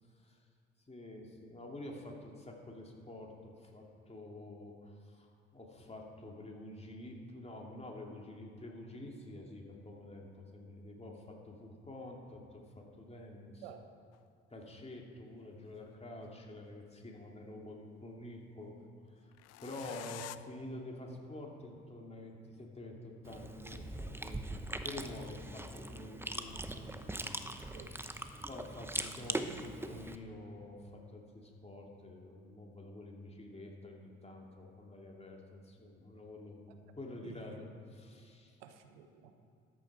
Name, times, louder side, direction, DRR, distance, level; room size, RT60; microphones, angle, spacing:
voice 1, 0.9-13.7 14.5-18.8 19.0-19.3 19.6-27.0 27.4-27.8 28.5-36.7 36.9-38.6, left 1 dB, 20° left, 0 dB, 2.8 m, -48 dB
sound 1, 14.1-14.2 15.5-16.5 19.3-20.4, left 15 dB, 55° left, 0.5 m, -48 dB
Chewing mastication, 23.2-30.2, right 1 dB, 10° right, 0.9 m, -41 dB
voice 2, 37.2-37.6 38.6-39.5, right 9 dB, 80° right, 7 dB, 1.0 m, -52 dB
13.5 x 10.0 x 4.9 m, 2.5 s
hypercardioid pair, 50°, 30 cm